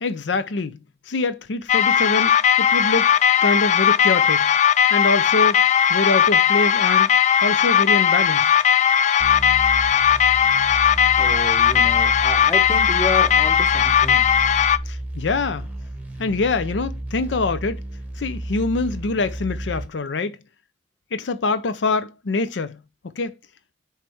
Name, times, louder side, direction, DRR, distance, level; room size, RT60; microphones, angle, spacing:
voice 1, 0.0-0.8 1.1-3.1 3.4-4.5 4.9-5.6 5.9-7.1 7.4-8.7 14.9-15.7 16.2-17.8 18.2-20.4 21.1-22.8 23.2-23.3, left 3 dB, 90° left, 0.6 m, -24 dB
sound 1, 1.7-14.8, left 8 dB, 40° left, 0.3 m, -17 dB
sound 2, 9.2-19.9, right 1 dB, 10° right, 1.1 m, -32 dB
voice 2, 11.2-14.3, left 1 dB, 15° left, 1.3 m, -30 dB
7.7 x 3.2 x 4.7 m
head